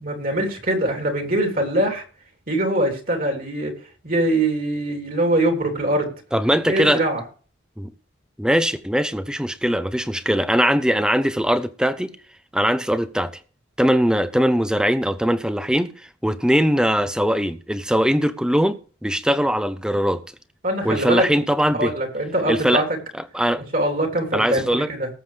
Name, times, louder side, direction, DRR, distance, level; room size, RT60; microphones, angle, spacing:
voice 1, 0.0-2.0 2.5-3.7 4.0-6.1 6.6-7.2 20.6-21.2 21.8-22.8 23.7-25.1, right 1 dB, 50° right, 3.4 m, -22 dB
voice 2, 6.3-7.0 7.8-7.9 8.4-12.1 12.5-13.3 13.8-15.9 16.2-20.2 20.8-21.9 22.5-22.8 23.3-23.6 24.3-24.9, equal, 5° right, 0.8 m, -21 dB
19.5 x 7.6 x 3.4 m
head